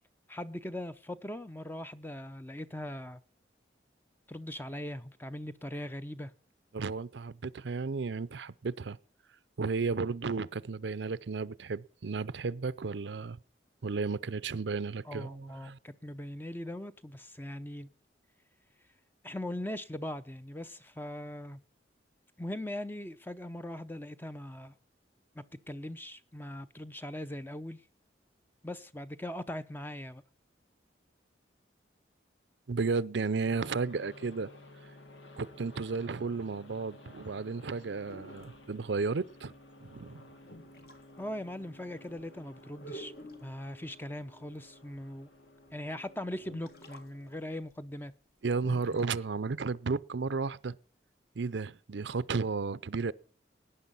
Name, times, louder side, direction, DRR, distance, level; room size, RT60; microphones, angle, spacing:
voice 1, 0.3-3.2 4.3-6.3 15.1-17.9 19.2-21.6 22.4-24.8 25.3-27.8 28.6-30.2 41.2-43.1 43.4-45.3 45.7-48.1, left 1 dB, 10° left, 0.6 m, -40 dB
voice 2, 6.7-9.0 9.6-13.4 13.8-15.8 32.7-34.5 35.4-39.5 39.8-40.2 48.4-50.8 51.4-53.1, right 4 dB, 75° right, 0.6 m, -33 dB
sound 1, 33.4-47.5, left 2 dB, 90° left, 2.1 m, -54 dB
sound 2, 38.1-38.6 39.9-40.0 40.4-41.0 41.6-41.7 42.0-42.2 42.8-43.6 44.9-45.0 45.7-45.8 46.4-47.1 47.3-47.4 47.7-47.8 48.5-49.1, right 1 dB, 55° left, 2.1 m, -48 dB
18.0 x 9.9 x 5.5 m
head